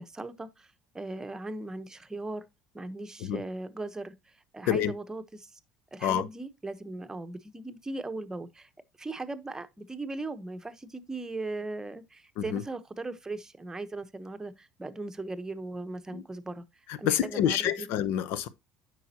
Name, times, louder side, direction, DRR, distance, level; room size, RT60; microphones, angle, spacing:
voice 1, 0.0-2.4 2.7-5.6 5.9-8.7 9.0-16.6 17.0-17.9, right 2 dB, 15° right, 1.0 m, -38 dB
voice 2, 16.9-18.5, left 10 dB, 65° left, 0.8 m, -28 dB
9.2 x 6.2 x 2.9 m
hypercardioid pair, 80°, 4 cm